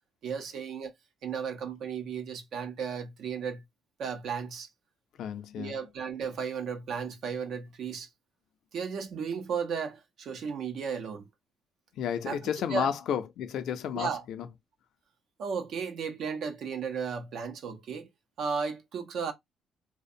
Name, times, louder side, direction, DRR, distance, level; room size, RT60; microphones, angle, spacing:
voice 1, 0.2-0.9 1.2-3.6 4.0-4.7 5.6-8.1 8.7-11.3 12.3-12.9 13.9-14.2 15.4-18.1 18.4-19.3, right 6 dB, 70° right, 0.6 m, -34 dB
voice 2, 5.2-5.8 12.0-14.5, left 8 dB, 80° left, 0.5 m, -32 dB
2.5 x 2.0 x 2.6 m
cardioid pair, 90°, 0 cm